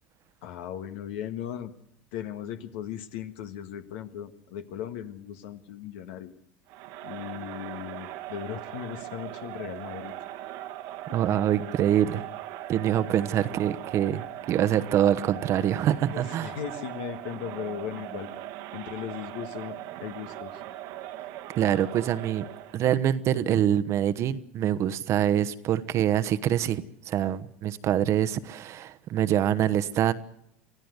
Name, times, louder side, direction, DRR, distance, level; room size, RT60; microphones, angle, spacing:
voice 1, 0.4-1.7 2.1-6.3 7.0-10.1 11.1-11.2 16.1-18.3 18.7-20.6, left 10 dB, 70° left, 1.7 m, -37 dB
Crowd, 6.7-22.9, right 13 dB, 65° right, 1.4 m, -40 dB
voice 2, 11.1-12.3 12.7-16.6 21.6-22.4 22.7-30.1, right 10 dB, 45° right, 1.1 m, -25 dB
24.5 x 15.0 x 8.2 m
hypercardioid pair, 85°, 6 cm